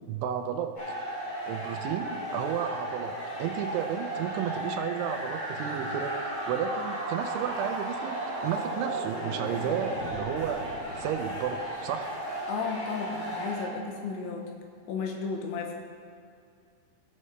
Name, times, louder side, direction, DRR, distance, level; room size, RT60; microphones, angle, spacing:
voice 1, 0.1-0.8 1.5-10.6 11.0-12.2, right 9 dB, 85° right, 7 dB, 3.1 m, -33 dB
sound 1, 0.8-13.7, right 1 dB, 40° left, 1.5 m, -35 dB
sound 2, 4.4-12.3, right 2 dB, 50° right, 2.2 m, -39 dB
voice 2, 12.5-14.5 14.9-15.7, left 5 dB, 85° left, 2 dB, 3.2 m, -33 dB
17.5 x 6.7 x 3.2 m, 2.3 s
omnidirectional pair, 5.4 m